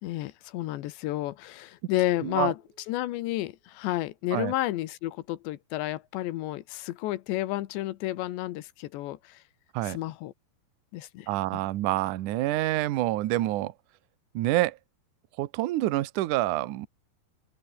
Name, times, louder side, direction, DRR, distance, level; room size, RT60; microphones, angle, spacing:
voice 1, 0.0-2.6 2.9-9.4 9.8-10.3 10.9-11.6, left 16 dB, 85° left, 3.4 m, -31 dB
sound 1, 2.1-4.0, right 5 dB, 55° right, 7.6 m, -61 dB
voice 2, 2.2-2.5 4.3-4.5 9.7-10.0 11.3-13.7 14.3-14.8 15.4-16.9, right 16 dB, 70° right, 2.0 m, -27 dB
open air
omnidirectional pair, 4.9 m